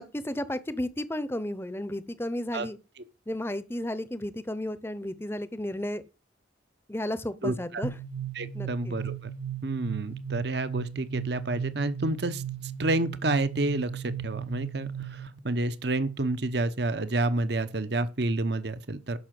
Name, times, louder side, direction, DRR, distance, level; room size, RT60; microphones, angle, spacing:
voice 1, 0.0-2.8 3.3-6.0 6.9-7.9 8.5-9.0, left 1 dB, 10° left, 0.8 m, -33 dB
voice 2, 7.4-7.8 8.3-9.3 9.6-12.4 12.8-19.2, right 2 dB, 60° right, 1.0 m, -29 dB
sound 1, 7.8-15.4, right 9 dB, 85° right, 1.1 m, -36 dB
11.5 x 6.2 x 7.7 m
head